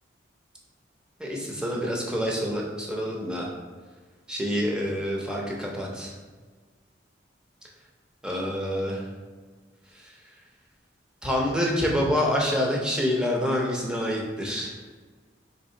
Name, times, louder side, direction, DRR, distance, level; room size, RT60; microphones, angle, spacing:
voice 1, 1.2-3.5 4.3-6.1 8.2-9.0 11.2-14.7, equal, 5° right, -2 dB, 0.6 m, -27 dB
3.4 x 2.7 x 4.3 m, 1.5 s
head